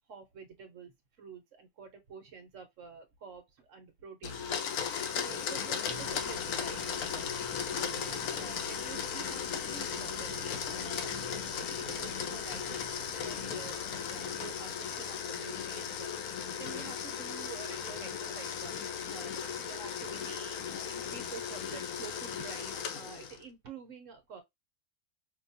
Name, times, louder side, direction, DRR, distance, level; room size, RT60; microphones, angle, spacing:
voice 1, 0.1-4.6 5.1-11.2 11.5-16.1 16.6-18.7 19.1-24.4, right 6 dB, 60° right, 1.0 m, -49 dB
Domestic sounds home sounds, 4.2-23.4, left 7 dB, 85° left, 1.2 m, -36 dB
sound 1, 5.9-15.2, right 5 dB, 85° right, 1.2 m, -50 dB
4.7 x 2.3 x 2.6 m
omnidirectional pair, 1.5 m